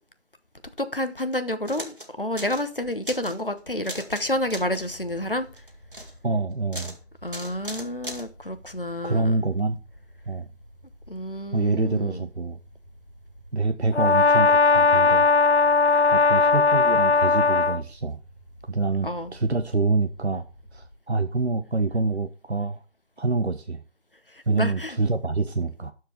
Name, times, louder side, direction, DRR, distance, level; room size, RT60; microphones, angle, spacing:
voice 1, 0.8-5.5 7.2-9.4 11.1-12.2 19.0-19.3 24.5-25.0, left 1 dB, 50° left, 11 dB, 1.0 m, -29 dB
sound 1, 1.7-2.1 2.4-2.7 2.9-3.4 3.8-4.2 4.5-4.9 5.6-6.1 6.7-7.0 7.3-8.3, right 1 dB, 50° right, 1.9 m, -37 dB
sound 2, 4.2-20.9, equal, 25° right, 2.5 m, -50 dB
voice 2, 6.2-6.9 9.0-9.8 10.3-10.5 11.5-12.6 13.5-15.2 16.1-18.2 18.7-20.4 20.7-22.8 23.2-23.8 24.5-25.9, right 3 dB, 70° right, 8 dB, 0.8 m, -26 dB
Brass instrument, 13.9-17.8, left 4 dB, 70° left, 0.6 m, -18 dB
12.0 x 4.8 x 4.6 m, 0.35 s
figure-of-eight pair, 175°, 35 cm